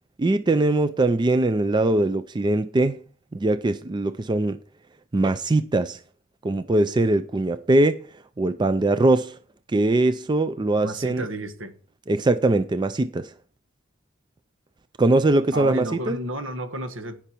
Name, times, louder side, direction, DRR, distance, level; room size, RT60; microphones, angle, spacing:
voice 1, 0.2-3.0 3.3-4.6 5.1-6.0 6.4-8.0 8.4-9.4 9.7-11.3 12.1-13.3 15.0-16.2, right 2 dB, 20° right, 0.4 m, -21 dB
voice 2, 10.8-11.7 15.5-17.2, right 1 dB, 70° right, 1.4 m, -31 dB
17.0 x 5.8 x 4.4 m
head